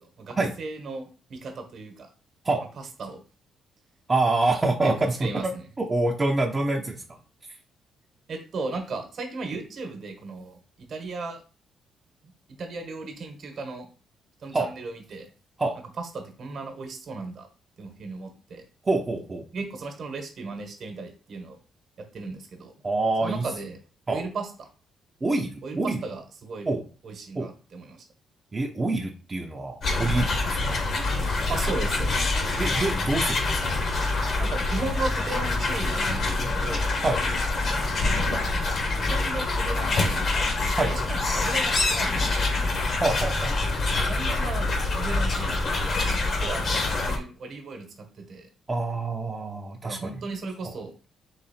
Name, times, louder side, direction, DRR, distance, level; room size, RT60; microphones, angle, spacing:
voice 1, 0.2-2.1 3.0-3.2 4.8-4.9 5.2-5.6 8.3-11.4 12.6-13.9 14.4-15.3 16.0-17.5 17.8-18.6 19.5-21.6 22.0-22.7 23.2-23.8 24.1-24.7 25.6-26.7 27.0-28.0 31.5-32.3 34.4-36.9 38.2-38.4 38.9-42.4 43.9-44.7 45.0-47.9 48.3-48.5 49.8-50.9, right 3 dB, 55° right, 4 dB, 1.1 m, -36 dB
voice 2, 4.1-5.5 5.8-7.0 14.5-14.7 15.6-15.8 18.8-19.4 22.8-23.5 24.1-24.2 25.2-26.0 26.7-26.8 27.3-27.5 28.5-30.8 32.6-33.7 37.0-37.2 40.7-40.9 43.0-43.6 48.7-50.2, right 2 dB, 25° right, 1 dB, 0.6 m, -26 dB
sound 1, 29.8-47.2, left 2 dB, 50° left, 1.1 m, -25 dB
4.0 x 3.1 x 4.2 m, 0.37 s
cardioid pair, 90°, 0 cm